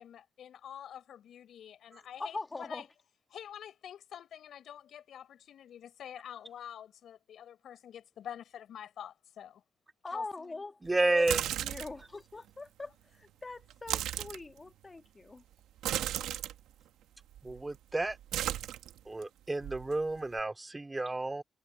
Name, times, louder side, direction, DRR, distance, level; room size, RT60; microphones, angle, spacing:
voice 1, 0.0-2.9 3.3-9.6 10.1-10.6, left 9 dB, 75° left, 5.9 m, -47 dB
voice 2, 2.2-2.9 10.0-11.3 11.6-15.4, left 3 dB, 30° left, 1.7 m, -42 dB
voice 3, 10.8-11.5 17.4-18.2 19.1-21.4, right 2 dB, 20° right, 2.3 m, -31 dB
sound 1, 11.1-12.0 13.7-14.4 15.8-16.5 17.3-17.8 18.0-19.2 19.6-20.4, right 12 dB, 90° right, 1.4 m, -35 dB
cardioid pair, 65°, 0 cm